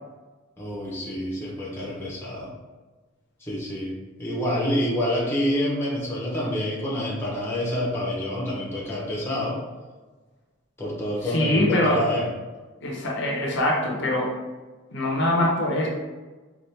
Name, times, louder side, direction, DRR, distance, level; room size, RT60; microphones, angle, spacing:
voice 1, 0.6-2.5 3.4-9.6 10.8-12.3, equal, 10° left, -4 dB, 0.7 m, -27 dB
voice 2, 11.2-12.1 12.8-14.3 14.9-15.9, left 1 dB, 55° left, -1 dB, 0.6 m, -23 dB
4.2 x 2.3 x 3.3 m, 1.3 s
head